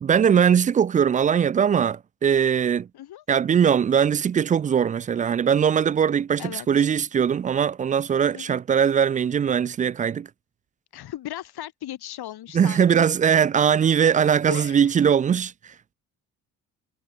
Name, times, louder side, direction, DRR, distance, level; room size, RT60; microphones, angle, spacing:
voice 1, 0.0-2.9 3.3-10.3 12.5-15.7, right 7 dB, 20° right, 0.4 m, -20 dB
voice 2, 6.4-6.9 8.3-8.6 10.9-13.0 14.0-14.1 14.5-14.9, left 13 dB, 55° left, 7.9 m, -37 dB
figure-of-eight pair, 45°, 45 cm